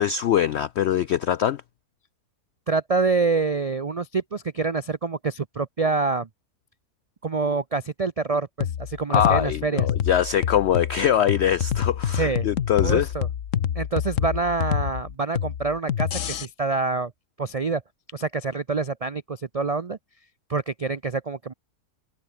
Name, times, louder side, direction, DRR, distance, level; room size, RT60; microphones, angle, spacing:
voice 1, 0.0-1.6 9.1-13.1, left 9 dB, 75° left, 0.6 m, -23 dB
voice 2, 2.7-6.3 7.2-9.8 12.1-12.5 12.8-13.3 13.8-16.1 16.4-17.1 17.4-17.8 18.1-20.0 20.5-21.5, right 4 dB, 65° right, 0.3 m, -26 dB
sound 1, 8.6-16.5, left 9 dB, 55° left, 1.2 m, -27 dB
omnidirectional pair, 1.7 m